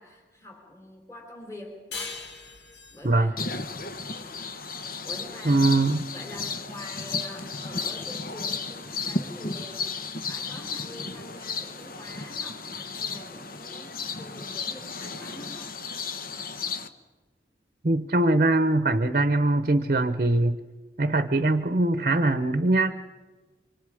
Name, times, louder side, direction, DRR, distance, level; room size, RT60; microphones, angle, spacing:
voice 1, 0.0-2.3 2.9-3.5 5.0-5.8 6.1-15.8, left 1 dB, 15° left, 1 dB, 3.7 m, -45 dB
sound 1, 1.9-5.1, left 4 dB, 75° left, 2.0 m, -41 dB
sound 2, 3.4-16.9, left 4 dB, 55° left, 1.2 m, -34 dB
voice 2, 5.4-6.0 17.8-20.6 21.0-22.9, right 2 dB, 45° right, 11 dB, 0.9 m, -22 dB
25.5 x 24.0 x 4.9 m, 1.3 s
head